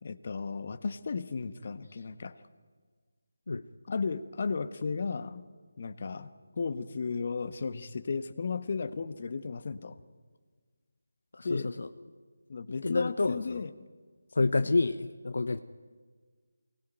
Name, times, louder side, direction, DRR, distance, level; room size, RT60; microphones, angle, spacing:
voice 1, 0.0-2.4 3.9-5.4 5.8-6.3 6.6-10.0 11.4-11.7 12.5-13.7 14.4-14.7, left 4 dB, 45° left, 11 dB, 1.3 m, -34 dB
voice 2, 11.3-11.9 12.8-13.6 14.4-15.6, left 3 dB, 65° left, 11 dB, 1.0 m, -28 dB
23.5 x 20.0 x 9.1 m, 1.5 s
figure-of-eight pair, 165°, 0 cm